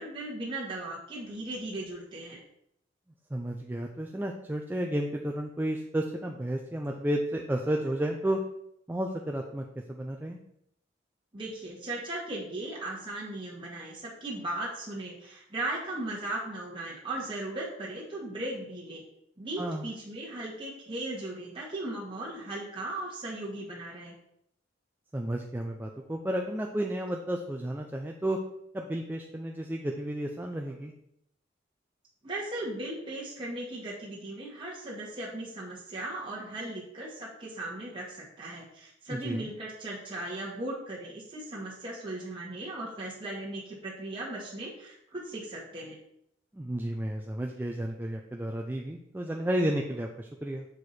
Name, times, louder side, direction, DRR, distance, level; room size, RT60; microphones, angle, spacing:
voice 1, 0.0-2.4 11.3-19.0 19.4-24.1 32.2-46.0, right 1 dB, 25° right, -5 dB, 1.3 m, -37 dB
voice 2, 3.3-8.4 8.9-10.4 19.6-19.9 25.1-28.4 28.7-30.9 39.1-39.5 46.5-50.7, right 1 dB, 10° right, 1 dB, 0.4 m, -32 dB
6.5 x 4.6 x 4.2 m, 0.75 s
head